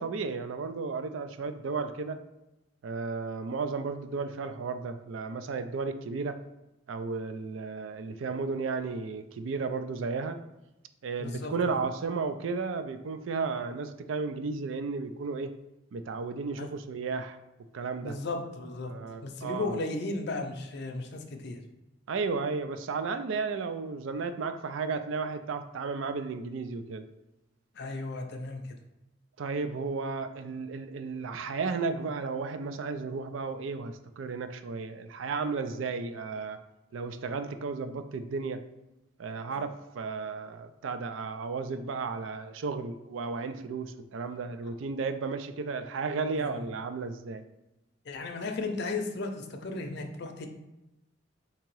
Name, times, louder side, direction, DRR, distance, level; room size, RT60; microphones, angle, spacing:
voice 1, 0.0-2.2 2.8-6.4 6.9-10.4 11.0-15.5 15.9-17.4 17.7-18.1 18.9-19.8 22.1-27.0 29.4-36.6 36.9-38.6 39.2-47.4, right 4 dB, 85° right, 9 dB, 0.4 m, -33 dB
voice 2, 11.2-11.5 16.6-16.7 18.0-18.9 19.2-21.6 27.8-28.6 39.5-39.6 46.4-46.6 48.1-50.5, left 3 dB, 60° left, 5 dB, 0.6 m, -35 dB
3.5 x 2.9 x 4.6 m, 0.97 s
head